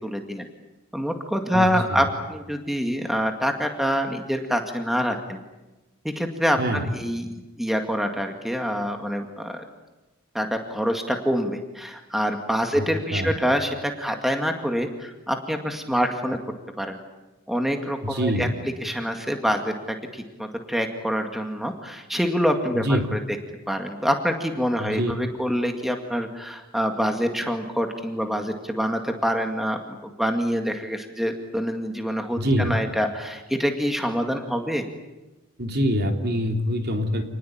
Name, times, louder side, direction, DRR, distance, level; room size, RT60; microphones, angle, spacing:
voice 1, 0.0-0.5 0.9-5.4 6.0-7.3 7.6-9.6 10.3-16.4 16.8-17.0 17.5-18.5 18.8-23.2 23.7-34.8, equal, ahead, 4 dB, 2.1 m, -26 dB
voice 2, 1.5-2.1 6.6-6.9 12.7-12.9 13.1-13.3 18.0-18.5 22.7-23.1 24.8-25.1 32.4-32.7 35.6-37.2, equal, 50° right, 4 dB, 3.2 m, -25 dB
28.5 x 20.0 x 8.8 m, 1.1 s
head